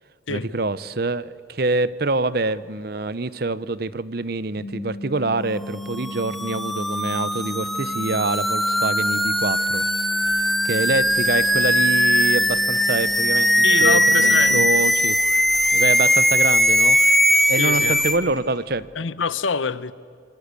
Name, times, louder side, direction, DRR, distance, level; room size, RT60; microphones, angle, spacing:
voice 1, 0.3-9.8 10.6-15.2 15.7-17.0 17.5-18.9, right 3 dB, 55° right, 0.8 m, -25 dB
sound 1, 4.6-14.6, left 2 dB, 80° right, 3.6 m, -36 dB
sound 2, 5.9-18.2, equal, ahead, 0.8 m, -20 dB
sound 3, 9.6-18.9, left 1 dB, 20° left, 3.9 m, -48 dB
voice 2, 13.6-14.7 17.6-18.0 19.0-19.9, left 5 dB, 85° left, 0.9 m, -25 dB
27.0 x 24.0 x 8.4 m
head